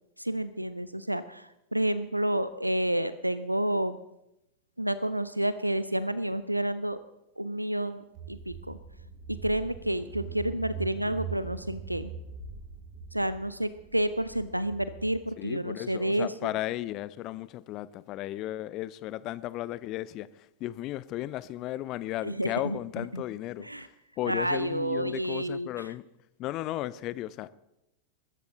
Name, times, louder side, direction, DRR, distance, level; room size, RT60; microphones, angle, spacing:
voice 1, 0.2-4.0 4.8-7.0 7.4-8.0 8.3-8.8 9.4-12.1 13.1-16.5 22.2-23.2 23.6-23.9 24.3-25.7, right 1 dB, 85° right, 0.6 m, -30 dB
Car / Engine, 8.1-15.2, right 6 dB, 45° right, 3.7 m, -42 dB
voice 2, 15.4-26.1 26.4-27.5, left 15 dB, 40° left, 0.6 m, -35 dB
22.0 x 13.5 x 3.9 m
figure-of-eight pair, 90°, 0 cm